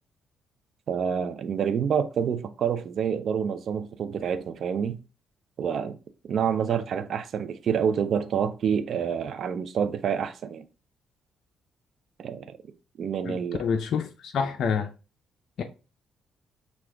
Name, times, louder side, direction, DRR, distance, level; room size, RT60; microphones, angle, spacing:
voice 1, 0.9-5.0 5.6-6.0 6.3-10.6 12.2-12.6 13.0-13.6, right 7 dB, 60° right, 0.5 m, -27 dB
voice 2, 13.2-14.9 15.6-15.7, left 6 dB, 65° left, 0.5 m, -28 dB
6.1 x 2.4 x 3.3 m
cardioid pair, 90°, 0 cm